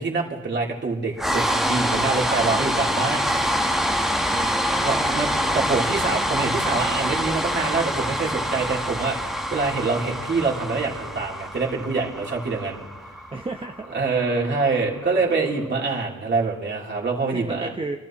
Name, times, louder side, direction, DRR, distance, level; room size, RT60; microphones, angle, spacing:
voice 1, 0.0-3.3 4.8-12.8 13.9-17.7, right 4 dB, 35° right, -2 dB, 3.2 m, -25 dB
sound 1, 1.2-15.3, equal, ahead, 1.1 m, -26 dB
voice 2, 4.3-5.2 13.3-14.0 17.3-18.0, right 2 dB, 20° right, 4 dB, 0.8 m, -33 dB
29.0 x 12.5 x 3.0 m, 1.2 s
cardioid pair, 90°, 30 cm